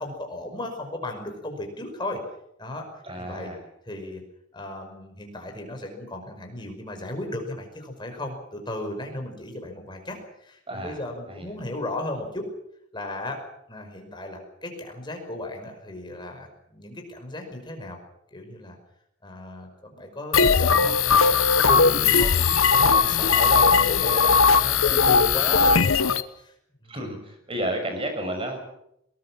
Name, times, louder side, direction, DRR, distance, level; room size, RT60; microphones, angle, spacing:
voice 1, 0.0-2.2 2.6-2.9 3.2-3.5 3.9-4.2 4.5-12.4 12.9-18.0 18.3-18.8 19.2-22.3 22.7-26.5 26.8-26.9, left 1 dB, 20° left, 3 dB, 5.4 m, -35 dB
voice 2, 3.0-3.6 10.7-11.0 11.3-11.5 23.2-23.4 26.9-28.6, right 1 dB, 25° right, 5 dB, 6.1 m, -32 dB
sound 1, 20.3-26.2, left 5 dB, 85° left, 1.0 m, -19 dB
22.0 x 19.5 x 7.4 m, 0.77 s
head